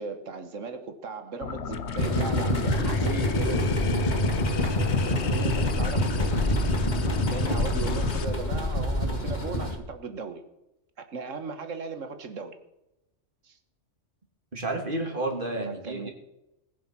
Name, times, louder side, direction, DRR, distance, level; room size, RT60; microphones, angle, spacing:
voice 1, 0.0-3.7 4.3-4.4 5.0-6.4 7.3-10.4 11.0-12.6 13.4-13.6 15.7-16.1, right 4 dB, 85° right, 1.7 m, -37 dB
sound 1, 1.4-8.2, left 7 dB, 65° left, 1.1 m, -33 dB
sound 2, 2.0-9.8, equal, 35° left, 2.3 m, -26 dB
voice 2, 14.5-16.1, right 2 dB, 45° right, 2.9 m, -31 dB
20.0 x 7.3 x 6.1 m
omnidirectional pair, 1.3 m